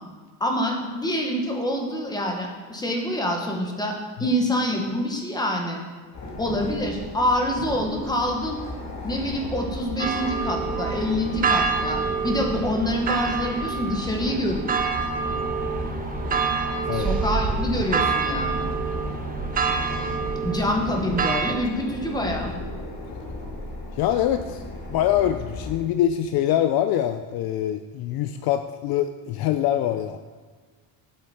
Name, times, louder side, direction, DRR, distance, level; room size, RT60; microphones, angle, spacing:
voice 1, 0.4-5.8 6.4-8.6 9.0-14.8 16.9-18.7 20.4-22.5, equal, 10° left, 1 dB, 1.3 m, -26 dB
sound 1, 6.1-25.7, left 2 dB, 40° left, 2.0 m, -36 dB
sound 2, 10.0-21.6, right 5 dB, 20° right, 0.4 m, -27 dB
voice 2, 24.0-24.6 24.9-30.2, left 11 dB, 60° left, 9 dB, 0.5 m, -24 dB
8.5 x 7.9 x 4.3 m, 1.5 s
cardioid pair, 145°, 43 cm